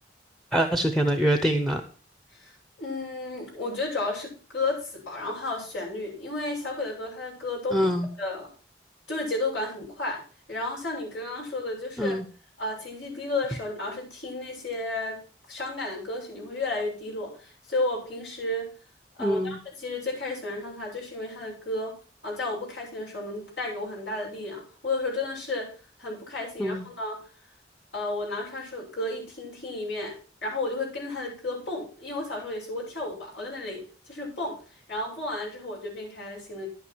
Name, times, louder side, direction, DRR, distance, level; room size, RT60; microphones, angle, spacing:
voice 1, 0.5-1.8 7.7-8.1 12.0-12.2 19.2-19.6 26.6-26.8, right 1 dB, ahead, 7 dB, 0.7 m, -24 dB
voice 2, 2.8-7.9 8.2-8.5 9.1-10.2 10.5-12.2 12.6-15.2 15.5-18.7 19.2-22.0 22.2-25.7 26.0-27.2 27.9-30.2 30.4-34.6 34.9-36.7, left 2 dB, 85° left, -3 dB, 7.0 m, -32 dB
11.0 x 9.1 x 4.5 m, 0.38 s
head